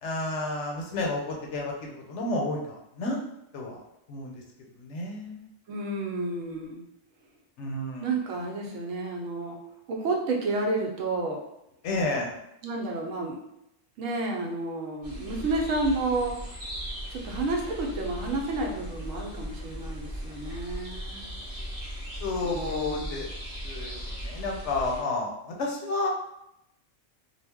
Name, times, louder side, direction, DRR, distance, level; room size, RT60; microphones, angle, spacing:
voice 1, 0.0-3.2 3.5-3.8 4.1-4.4 4.8-5.4 7.6-8.1 11.8-12.3 22.2-23.3 23.6-26.1, left 2 dB, 70° left, 0 dB, 0.9 m, -31 dB
voice 2, 5.7-6.8 8.0-9.6 9.9-11.4 12.6-13.4 14.0-16.4 17.1-21.3 22.4-23.3, right 2 dB, 85° right, 0 dB, 1.0 m, -31 dB
sound 1, 15.0-25.0, equal, 35° right, 0.8 m, -38 dB
2.4 x 2.0 x 3.4 m, 0.83 s
omnidirectional pair, 1.3 m